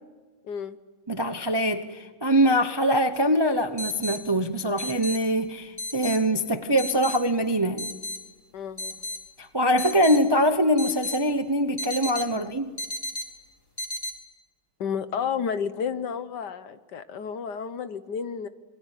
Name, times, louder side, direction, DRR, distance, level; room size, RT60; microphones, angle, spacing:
voice 1, 0.5-0.8 8.5-8.9 12.3-12.5 14.8-18.5, left 7 dB, 60° left, 1.6 m, -31 dB
voice 2, 1.1-7.9 9.4-12.7, equal, 20° right, 0.7 m, -23 dB
sound 1, 3.1-3.2 3.8-4.2 4.8-5.2 5.8-6.2 6.8-7.2 7.8-8.2 8.8-9.2 9.8-10.2 10.8-11.2 11.8-12.3 12.8-13.3 13.8-14.1, left 1 dB, 10° left, 3.9 m, -33 dB
27.0 x 22.0 x 9.1 m
omnidirectional pair, 2.1 m